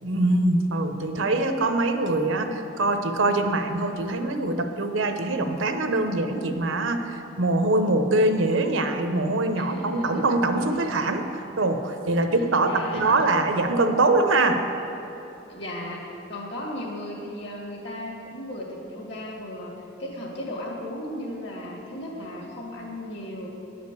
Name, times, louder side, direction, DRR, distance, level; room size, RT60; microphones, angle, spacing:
voice 1, 0.0-14.6, right 2 dB, 90° right, 6 dB, 0.8 m, -23 dB
voice 2, 9.5-10.2 10.8-10.9 12.4-13.3 15.5-19.7 20.0-23.5, left 1 dB, 65° left, -2 dB, 2.2 m, -36 dB
10.0 x 5.1 x 8.2 m, 3.0 s
head